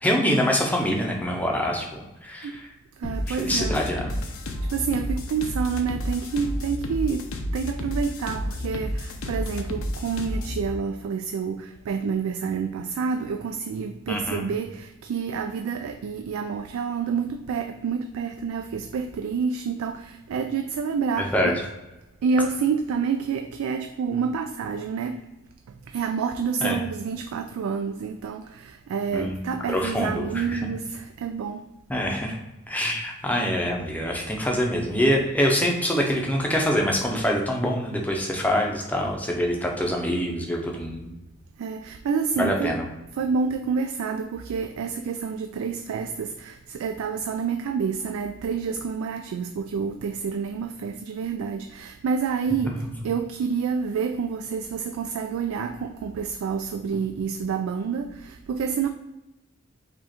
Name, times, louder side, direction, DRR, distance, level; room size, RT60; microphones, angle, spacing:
voice 1, 0.0-2.7 3.3-4.1 14.1-14.5 21.2-21.6 26.6-26.8 29.1-29.4 29.7-30.6 31.9-32.4 32.7-41.1 42.4-42.9, equal, 5° left, 0.6 m, -25 dB
sound 1, 3.0-10.7, left 1 dB, 70° left, 0.6 m, -31 dB
voice 2, 3.0-3.8 4.7-21.5 22.2-25.3 25.7-31.7 41.6-42.8 43.2-58.9, right 6 dB, 75° right, 0.3 m, -28 dB
4.9 x 2.4 x 4.3 m
head